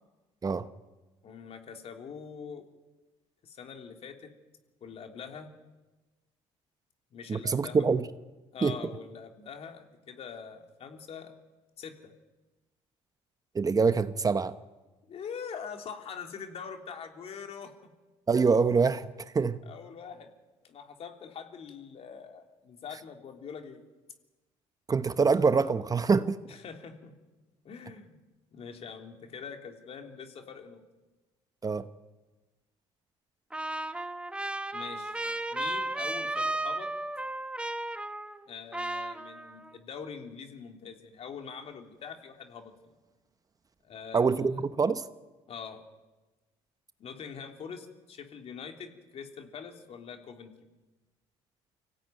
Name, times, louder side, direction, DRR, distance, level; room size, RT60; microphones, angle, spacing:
voice 1, 1.2-2.7 3.4-4.3 4.8-5.5 7.1-8.0 8.5-11.3 11.8-12.1 15.1-17.9 19.6-20.3 20.6-23.8 26.5-27.2 27.6-28.2 28.5-30.8 34.7-35.2 35.5-36.9 38.5-42.9 43.8-44.6 45.5-45.8 47.0-50.5, left 6 dB, 55° left, 3.3 m, -43 dB
voice 2, 7.3-8.0 8.6-8.8 13.5-14.5 18.3-19.1 19.3-19.6 24.9-26.4 31.6-31.9 44.1-45.0, right 5 dB, 30° right, 1.0 m, -25 dB
Trumpet, 33.5-38.5 38.7-39.7, right 2 dB, 10° right, 1.2 m, -34 dB
24.5 x 16.5 x 9.3 m
supercardioid pair, 80°, 13 cm